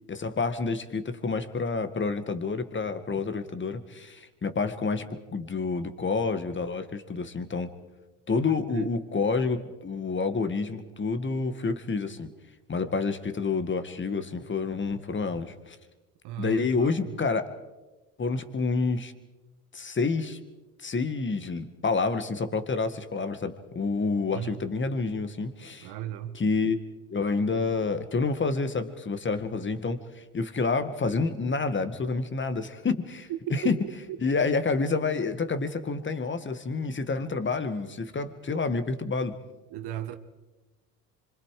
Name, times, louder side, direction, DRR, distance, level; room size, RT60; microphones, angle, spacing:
voice 1, 0.1-5.0 5.3-7.7 8.3-12.3 12.7-15.8 16.4-17.4 18.2-19.1 19.7-20.4 20.8-25.9 26.3-26.8 27.1-33.8 34.2-39.4, left 4 dB, 25° left, 10 dB, 1.9 m, -28 dB
voice 2, 16.2-16.9 24.3-24.6 25.8-26.4 33.6-33.7 39.7-40.1, right 12 dB, 60° right, 8 dB, 1.9 m, -35 dB
26.0 x 24.5 x 5.0 m, 1.1 s
hypercardioid pair, 75°, 44 cm